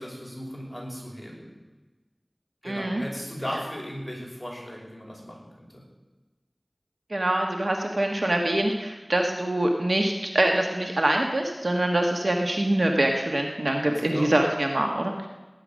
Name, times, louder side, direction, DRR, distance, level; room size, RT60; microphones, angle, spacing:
voice 1, 0.0-1.5 2.6-5.8 13.8-14.3, equal, 10° left, -3 dB, 5.8 m, -37 dB
voice 2, 2.6-3.0 7.1-15.1, right 1 dB, 80° right, 2 dB, 1.3 m, -24 dB
18.5 x 9.8 x 6.4 m, 1.2 s
wide cardioid pair, 40°, 0 cm